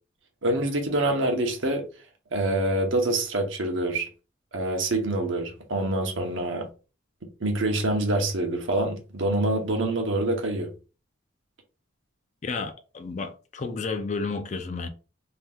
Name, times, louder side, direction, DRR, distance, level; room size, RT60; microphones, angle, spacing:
voice 1, 0.4-1.9 2.3-4.1 4.5-6.7 7.4-10.7, right 1 dB, 70° right, 0.8 m, -26 dB
voice 2, 12.4-14.9, left 4 dB, 35° left, 0.4 m, -31 dB
2.8 x 2.2 x 3.4 m
head